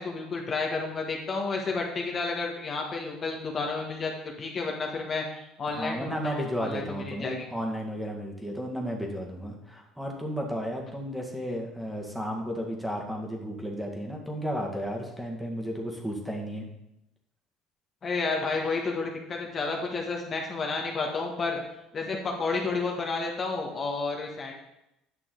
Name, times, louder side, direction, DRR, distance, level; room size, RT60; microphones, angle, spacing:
voice 1, 0.0-7.5 18.0-21.6 21.9-24.5, left 4 dB, 40° left, 1 dB, 1.6 m, -31 dB
voice 2, 5.7-16.6, equal, ahead, 0 dB, 1.8 m, -33 dB
9.1 x 6.0 x 3.9 m, 0.86 s
hypercardioid pair, 75°, 0 cm